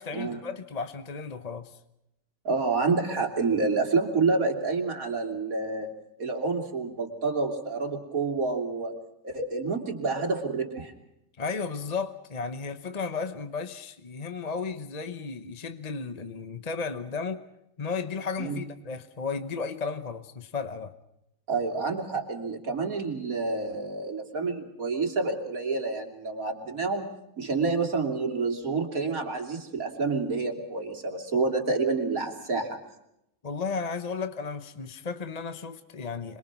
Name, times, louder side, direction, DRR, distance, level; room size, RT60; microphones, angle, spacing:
voice 1, 0.0-1.7 11.4-17.4 17.8-20.9 33.4-36.4, left 5 dB, 30° left, 0.8 m, -34 dB
voice 2, 2.4-5.9 6.2-8.9 9.2-10.9 18.4-18.6 21.5-27.1 27.4-32.8, right 4 dB, 50° right, 3.4 m, -28 dB
26.5 x 22.5 x 6.0 m
omnidirectional pair, 1.9 m